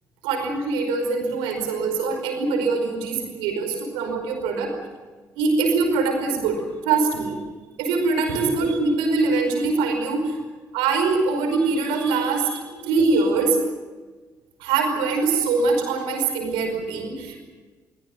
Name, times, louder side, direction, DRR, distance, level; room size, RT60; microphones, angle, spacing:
voice 1, 0.2-4.7 5.3-7.4 7.8-10.4 10.7-13.6 14.6-17.5, right 4 dB, 70° right, 4 dB, 5.1 m, -23 dB
24.0 x 17.0 x 9.5 m, 1.3 s
figure-of-eight pair, 45°, 9 cm